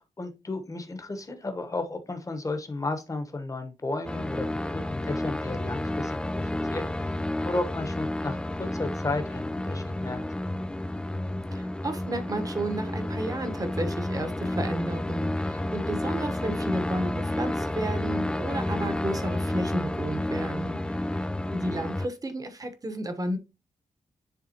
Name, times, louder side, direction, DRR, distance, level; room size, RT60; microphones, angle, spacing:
voice 1, 0.0-10.2, left 2 dB, 25° left, 1.1 m, -34 dB
sound 1, 4.1-22.1, left 1 dB, 5° left, 0.3 m, -31 dB
voice 2, 11.5-23.4, right 1 dB, 25° right, 1.1 m, -33 dB
10.5 x 3.6 x 2.9 m
wide cardioid pair, 130°, 14 cm